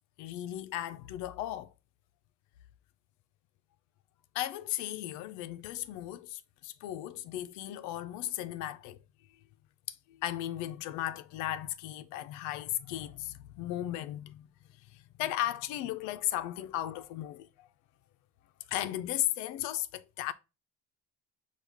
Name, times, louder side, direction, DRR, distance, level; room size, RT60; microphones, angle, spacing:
voice 1, 0.2-1.7 4.3-9.0 9.9-14.5 14.9-17.7 18.7-20.3, left 13 dB, 80° left, 0.5 m, -36 dB
6.2 x 2.4 x 3.5 m
cardioid pair, 160°, 29 cm